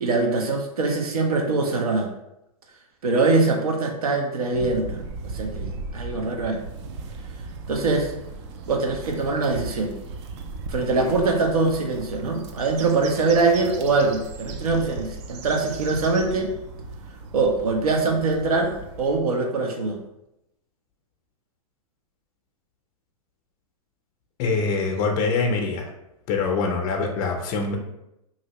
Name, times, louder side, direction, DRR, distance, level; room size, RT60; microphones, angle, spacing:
voice 1, 0.0-2.1 3.0-5.0 5.3-6.6 7.7-8.1 8.7-9.9 10.7-16.5 17.3-20.0, right 3 dB, 85° right, 2 dB, 0.7 m, -23 dB
sound 1, 4.5-19.2, right 3 dB, 50° right, 0.4 m, -37 dB
voice 2, 24.4-25.9 26.3-27.8, left 4 dB, 35° left, 2 dB, 0.5 m, -24 dB
2.8 x 2.7 x 2.9 m, 0.85 s
hypercardioid pair, 120°, 19 cm